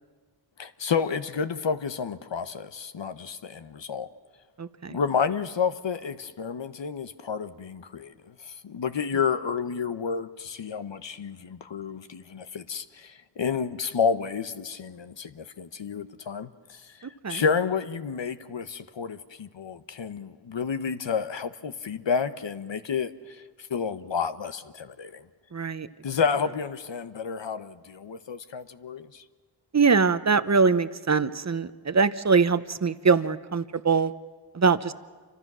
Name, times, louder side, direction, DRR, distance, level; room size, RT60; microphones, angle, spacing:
voice 1, 0.6-4.1 4.9-25.3 26.0-29.2, left 6 dB, 70° left, 10 dB, 1.0 m, -30 dB
voice 2, 4.6-5.0 17.0-17.4 25.5-25.9 29.7-34.1 34.5-34.9, right 5 dB, 35° right, 13 dB, 0.9 m, -23 dB
28.0 x 25.0 x 6.2 m, 1.5 s
cardioid pair, 45°, 46 cm